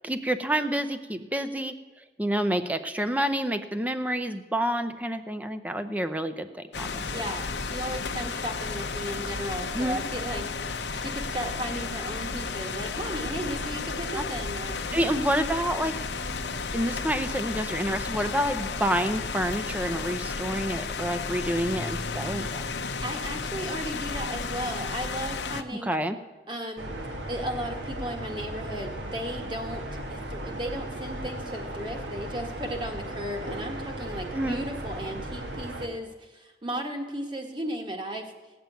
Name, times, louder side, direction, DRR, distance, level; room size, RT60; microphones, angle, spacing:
voice 1, 0.0-1.8 2.2-6.5 6.8-7.2 9.7-10.0 14.2-14.3 14.9-15.9 16.7-22.6 25.8-26.2 34.3-34.7, equal, 10° right, 9 dB, 0.6 m, -28 dB
sound 1, 6.7-25.6, left 4 dB, 70° left, 0.8 m, -33 dB
voice 2, 7.1-15.2 23.0-26.0 26.5-26.9 27.3-38.3, right 1 dB, 25° right, 3 dB, 1.5 m, -35 dB
sound 2, 26.8-35.9, right 1 dB, 80° right, 1.8 m, -36 dB
17.0 x 6.9 x 9.1 m, 1.2 s
head